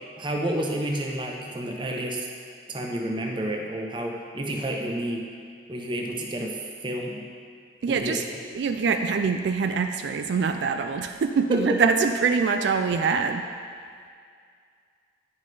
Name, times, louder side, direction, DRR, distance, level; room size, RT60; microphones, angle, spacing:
voice 1, 0.2-2.3 2.7-5.2 5.7-6.6 6.8-7.2 7.9-8.3 11.5-11.6, right 1 dB, 25° right, 1 dB, 0.6 m, -30 dB
voice 2, 7.8-8.2 8.5-13.4, right 5 dB, 75° right, 6 dB, 0.3 m, -24 dB
9.2 x 5.4 x 3.3 m, 2.2 s
head